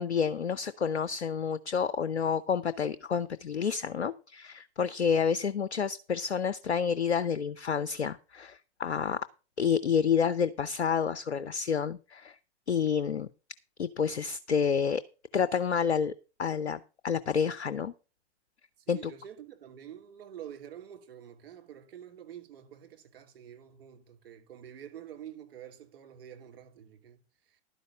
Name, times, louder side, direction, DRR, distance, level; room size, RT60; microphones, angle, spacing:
voice 1, 0.0-9.2 9.6-12.4 12.7-13.3 13.8-15.0 15.3-16.1 16.4-17.9 18.9-19.1, left 7 dB, 80° left, 0.6 m, -29 dB
voice 2, 18.8-27.6, right 10 dB, 55° right, 2.7 m, -48 dB
11.5 x 5.3 x 7.2 m
figure-of-eight pair, 105°, 34 cm